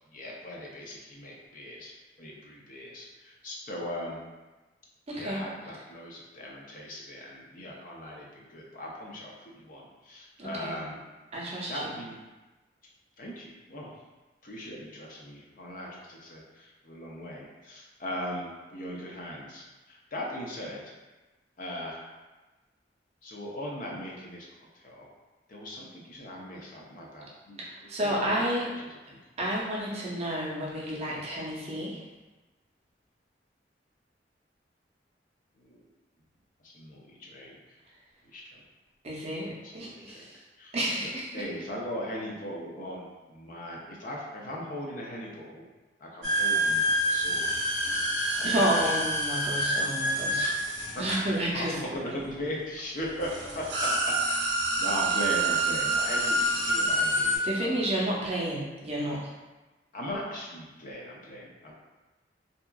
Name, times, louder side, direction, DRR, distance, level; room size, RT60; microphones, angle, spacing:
voice 1, 0.1-1.9 2.2-4.2 5.1-11.0 11.7-12.1 13.2-14.0 14.4-20.9 21.6-22.1 23.2-24.5 24.7-25.1 25.5-29.2 35.6-35.9 36.6-37.8 38.2-38.6 39.6-40.8 41.0-45.7 46.0-47.6 48.4-49.0 50.4-50.5 50.9-51.0 51.5-53.3 53.5-54.4 54.8-57.8 59.9-61.7, left 1 dB, 50° left, -2 dB, 0.5 m, -39 dB
voice 2, 5.1-5.4 10.4-10.8 11.3-11.9 27.7-28.7 29.4-32.0 39.0-40.4 40.7-41.4 48.4-50.5 51.0-51.7 57.4-59.3, right 1 dB, 35° right, -5 dB, 0.5 m, -30 dB
sound 1, 46.2-51.9 52.8-52.9 53.2-57.4, right 1 dB, 85° right, 0.6 m, -27 dB
2.7 x 2.3 x 2.3 m, 1.2 s
head